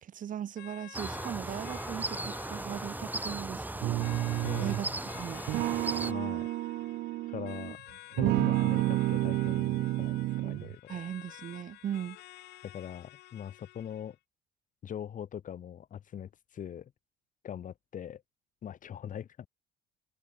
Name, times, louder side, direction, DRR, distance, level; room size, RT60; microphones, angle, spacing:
voice 1, 0.0-5.4 10.9-12.2, right 10 dB, 50° right, 2.6 m, -39 dB
sound 1, 0.6-14.1, left 17 dB, 80° left, 5.1 m, -51 dB
sound 2, 0.9-6.1, right 2 dB, 10° right, 3.7 m, -37 dB
sound 3, 3.8-4.9 5.5-7.7 8.2-10.8, right 17 dB, 70° right, 0.4 m, -30 dB
voice 2, 4.4-4.8 6.0-6.5 7.3-7.8 8.2-11.0 12.6-14.2 14.8-16.9 17.4-18.2 18.6-19.5, left 9 dB, 50° left, 3.9 m, -41 dB
cardioid pair, 110°, 17 cm